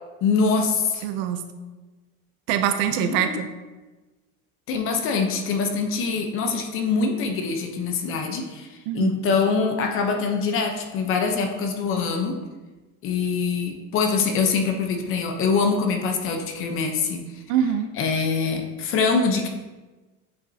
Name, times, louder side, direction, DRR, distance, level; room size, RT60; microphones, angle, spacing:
voice 1, 0.2-1.0 3.0-3.4 4.7-12.3 13.0-17.4 18.0-19.5, left 5 dB, 40° left, 4 dB, 0.8 m, -24 dB
voice 2, 1.0-1.4 2.5-3.5 8.9-9.2 17.5-17.9, right 9 dB, 85° right, 8 dB, 0.6 m, -24 dB
8.2 x 5.3 x 2.7 m, 1.2 s
cardioid pair, 170°, 32 cm